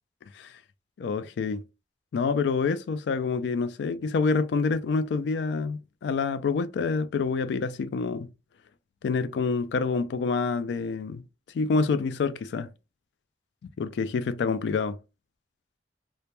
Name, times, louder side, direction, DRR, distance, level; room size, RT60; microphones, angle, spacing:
voice 1, 1.0-1.6 2.1-8.3 9.0-11.2 11.5-12.7 13.8-15.0, left 4 dB, 75° left, 0.3 m, -27 dB
2.1 x 2.1 x 2.9 m
head